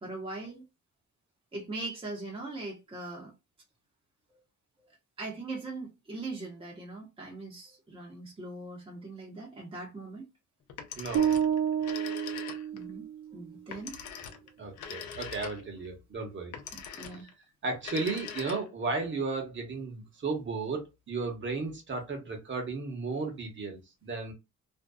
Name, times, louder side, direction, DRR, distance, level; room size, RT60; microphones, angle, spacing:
voice 1, 0.0-0.6 1.5-3.3 4.3-4.4 4.8-4.9 5.2-10.3 12.7-13.1 13.3-14.0 16.7-17.3, right 2 dB, 20° right, 0.8 m, -40 dB
Telephone, 10.7-12.9 13.7-15.9 16.5-17.3 17.7-18.9, left 7 dB, 75° left, 0.6 m, -42 dB
voice 2, 10.9-11.3 14.6-16.5 17.1-17.3 17.6-24.3, right 3 dB, 40° right, 1.1 m, -34 dB
sound 1, 11.1-13.3, right 9 dB, 70° right, 0.7 m, -29 dB
2.6 x 2.2 x 2.3 m
cardioid pair, 90°, 30 cm